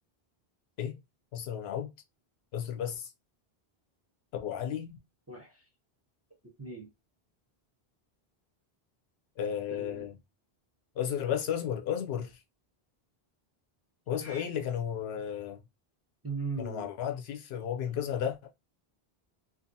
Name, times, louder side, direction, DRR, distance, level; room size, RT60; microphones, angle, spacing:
voice 1, 1.3-1.9 2.5-3.1 4.3-5.0 9.4-10.1 11.0-12.4 14.1-15.6 16.6-18.4, left 9 dB, 80° left, 0.8 m, -33 dB
voice 2, 5.3-5.6 6.6-6.9 9.7-10.1 14.2-14.4 16.2-16.9, right 4 dB, 20° right, 0.5 m, -38 dB
2.6 x 2.4 x 2.6 m
omnidirectional pair, 1.0 m